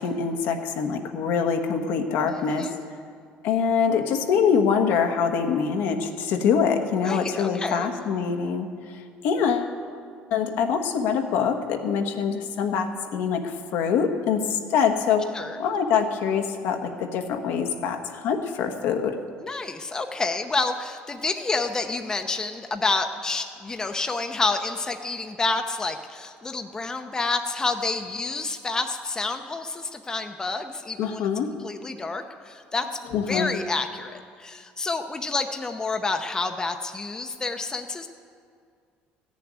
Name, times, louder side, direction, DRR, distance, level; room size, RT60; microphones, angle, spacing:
voice 1, 0.0-2.7 3.4-9.7 10.3-15.2 15.6-19.2 31.0-31.5 33.1-33.5, left 6 dB, 75° left, 4 dB, 1.2 m, -24 dB
voice 2, 2.2-2.8 7.0-7.9 15.3-15.6 19.4-31.3 31.6-32.9 33.3-38.1, left 3 dB, 20° left, 6 dB, 0.7 m, -29 dB
14.5 x 6.9 x 9.5 m, 2.2 s
cardioid pair, 120°, 4 cm